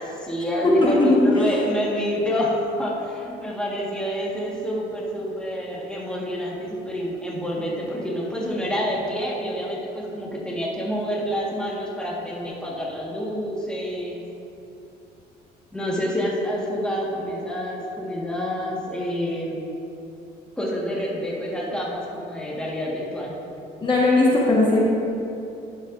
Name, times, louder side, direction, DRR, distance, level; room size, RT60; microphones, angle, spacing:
voice 1, 0.0-14.2 15.7-19.6 20.6-23.3, equal, 5° left, -4 dB, 1.4 m, -27 dB
voice 2, 0.8-1.4 23.8-24.8, left 2 dB, 30° left, -4 dB, 1.2 m, -18 dB
11.5 x 7.5 x 2.5 m, 2.8 s
cardioid pair, 110°, 17 cm